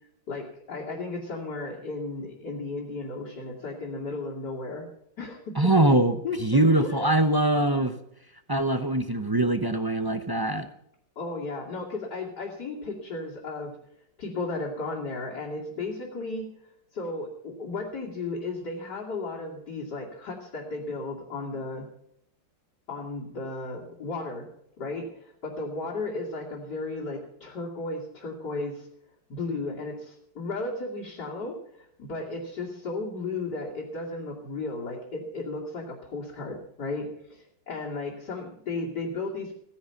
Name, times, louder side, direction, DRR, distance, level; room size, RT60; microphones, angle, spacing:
voice 1, 0.3-4.9 5.2-5.8 6.2-7.1 11.2-13.8 14.2-16.5 16.9-21.9 22.9-24.5 24.8-28.9 29.3-39.5, left 3 dB, 65° left, -5 dB, 3.2 m, -34 dB
voice 2, 5.6-8.0 8.5-10.7, right 1 dB, 30° right, 9 dB, 0.4 m, -23 dB
16.5 x 10.5 x 5.9 m, 0.76 s
omnidirectional pair, 1.9 m